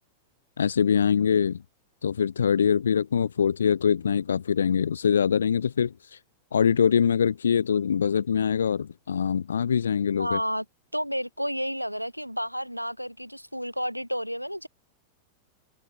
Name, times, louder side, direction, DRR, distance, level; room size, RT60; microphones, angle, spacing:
voice 1, 0.6-1.6 2.0-5.9 6.5-10.4, left 7 dB, 70° left, 0.9 m, -23 dB
voice 2, 10.2-10.7 10.9-14.7, equal, 90° left, 3.7 m, -31 dB
open air
figure-of-eight pair, 90°, 0 cm